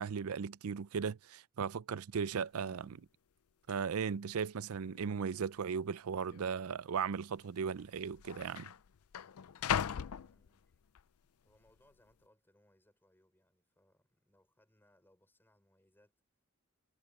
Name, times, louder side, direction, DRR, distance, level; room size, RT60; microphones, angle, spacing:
voice 1, 0.0-3.1 3.7-8.7, right 6 dB, 80° right, 0.5 m, -37 dB
sound 1, 2.2-2.3 2.6-3.0 3.7-3.8 4.5-5.1 5.3-5.4 6.3-6.5 7.5-7.6 7.8-11.0 11.5-11.9, left 8 dB, 90° left, 0.5 m, -40 dB
voice 2, 9.9-10.8 11.4-16.2, left 1 dB, 10° left, 5.9 m, -71 dB
head